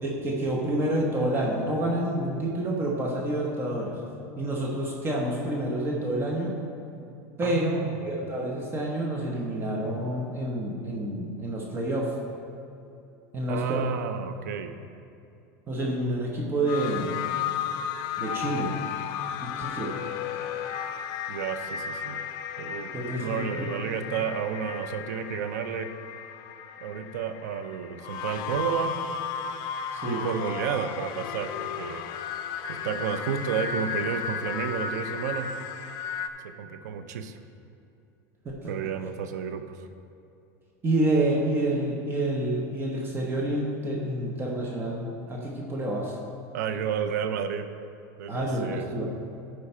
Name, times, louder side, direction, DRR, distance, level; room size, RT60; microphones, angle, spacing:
voice 1, 0.0-4.0 4.4-6.6 7.4-12.1 13.3-13.9 15.7-17.1 18.2-18.7 19.4-19.9 22.9-24.0 29.9-30.3 38.4-38.8 40.8-46.2 48.3-49.1, right 1 dB, 25° right, -2 dB, 1.0 m, -28 dB
voice 2, 7.4-7.9 13.5-14.8 21.3-22.2 22.6-22.9 23.2-25.9 26.8-29.0 30.0-32.1 32.7-35.5 36.4-37.4 38.7-39.8 46.5-47.7 48.2-48.9, right 7 dB, 90° right, 9 dB, 0.6 m, -31 dB
sound 1, 16.7-36.3, left 7 dB, 55° left, 0.5 m, -34 dB
11.5 x 4.7 x 4.4 m, 2.7 s
supercardioid pair, 125°, 9 cm